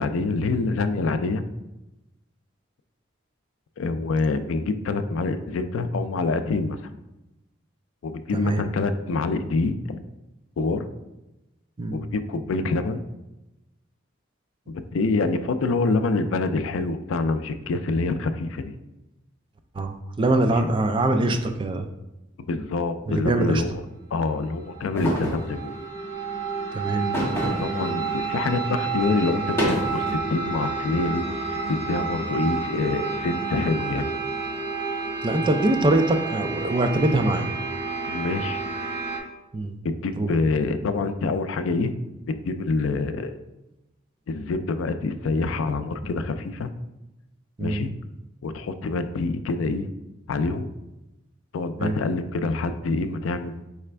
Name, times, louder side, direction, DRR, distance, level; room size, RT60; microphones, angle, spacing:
voice 1, 0.0-1.4 3.8-6.8 8.0-10.0 10.6-10.9 11.9-13.0 14.7-18.7 20.6-20.7 22.5-23.8 24.1-25.7 27.4-31.4 31.7-34.1 38.1-38.6 39.8-41.9 42.3-43.4 44.3-46.7 47.6-47.9 48.4-49.9 50.3-50.7 51.5-53.6, left 3 dB, 85° left, 10 dB, 0.4 m, -26 dB
voice 2, 8.3-8.6 11.8-12.0 19.8-21.9 23.1-23.6 26.7-27.1 35.2-37.5 39.5-39.7 40.1-40.3 47.6-47.9 51.8-52.0, right 2 dB, 25° right, 6 dB, 0.3 m, -23 dB
sound 1, 24.4-39.2, right 4 dB, 50° right, 1.0 m, -30 dB
sound 2, 24.9-25.5 27.1-27.7 28.2-28.3 29.3-30.1, equal, 15° left, 1.3 m, -26 dB
4.9 x 3.3 x 3.3 m, 0.98 s
head